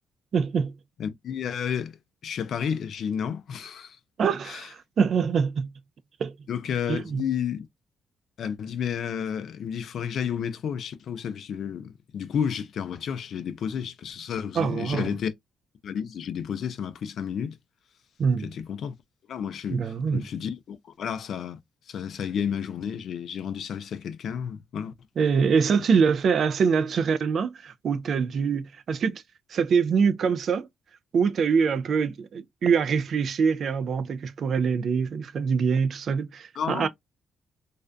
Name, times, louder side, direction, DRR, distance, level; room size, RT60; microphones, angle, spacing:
voice 1, 0.3-0.7 4.2-5.7 6.2-6.3 6.9-7.2 14.6-15.1 18.2-18.5 19.7-20.2 25.2-29.2 29.5-30.7 31.1-36.9, right 6 dB, 55° right, 0.3 m, -24 dB
voice 2, 1.0-2.0 2.2-4.0 4.4-4.7 6.5-7.7 8.4-15.3 15.8-17.6 18.4-18.9 19.3-21.6 21.9-24.9 36.6-36.9, left 8 dB, 65° left, 0.3 m, -31 dB
2.4 x 2.2 x 2.4 m
cardioid pair, 90°, 0 cm